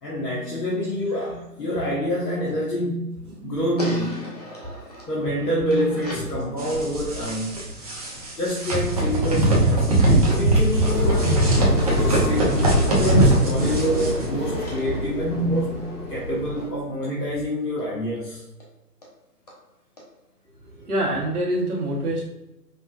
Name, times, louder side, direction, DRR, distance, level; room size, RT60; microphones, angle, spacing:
voice 1, 0.0-3.1 3.4-4.3 5.1-7.7 8.3-11.4 11.8-12.5 12.9-18.4, equal, 75° left, -6 dB, 1.1 m, -27 dB
sound 1, 3.8-6.4 9.9-11.3 11.8-15.9 17.8-17.9 18.2-18.3 18.6-18.7 19.0-19.1 19.5-19.6 20.0-20.1, left 1 dB, 25° left, 0.5 m, -40 dB
sound 2, 6.6-14.2, right 1 dB, 25° right, 0.6 m, -21 dB
sound 3, 10.7-16.7, left 1 dB, 10° left, 1.2 m, -26 dB
voice 2, 20.7-22.2, right 1 dB, 65° right, -2 dB, 1.3 m, -26 dB
5.3 x 2.2 x 2.3 m, 0.93 s
figure-of-eight pair, 130°, 48 cm